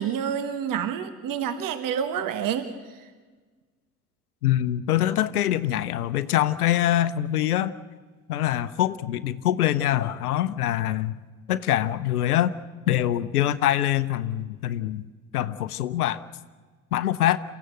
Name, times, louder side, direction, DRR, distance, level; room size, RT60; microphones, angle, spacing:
voice 1, 0.0-3.1, right 8 dB, 45° right, 11 dB, 1.5 m, -28 dB
voice 2, 4.4-7.7 8.3-11.1 11.5-12.5 12.9-15.1 15.3-16.2 16.9-17.4, left 12 dB, 75° left, 15 dB, 0.8 m, -24 dB
28.5 x 15.5 x 7.9 m, 1.4 s
figure-of-eight pair, 55°, 46 cm